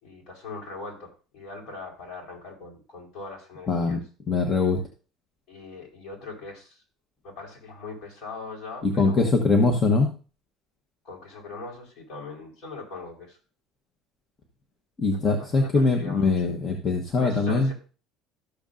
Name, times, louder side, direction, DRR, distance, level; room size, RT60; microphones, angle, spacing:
voice 1, 0.0-4.0 5.5-6.8 7.2-9.4 11.0-13.4 15.2-16.5 17.1-17.7, left 3 dB, 55° left, 0 dB, 4.3 m, -41 dB
voice 2, 3.7-4.0 4.3-4.8 9.0-10.1 15.0-17.7, left 3 dB, 30° left, 3 dB, 1.2 m, -22 dB
13.0 x 7.1 x 2.6 m, 0.36 s
cardioid pair, 125°, 0 cm